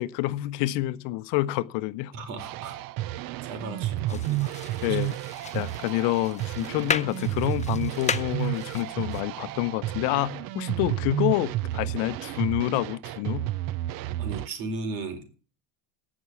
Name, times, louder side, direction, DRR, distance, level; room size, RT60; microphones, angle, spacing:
voice 1, 0.0-2.1 4.1-4.2 4.8-5.2 5.5-13.5, left 17 dB, 55° left, 0.8 m, -28 dB
voice 2, 2.1-2.8 3.4-4.5 4.8-5.0 14.2-15.4, right 3 dB, 65° right, 4.3 m, -36 dB
sound 1, 2.4-14.5, right 15 dB, 45° right, 0.6 m, -31 dB
sound 2, 4.1-9.2, left 6 dB, 15° left, 0.7 m, -35 dB
17.0 x 6.2 x 7.2 m
supercardioid pair, 105°, 49 cm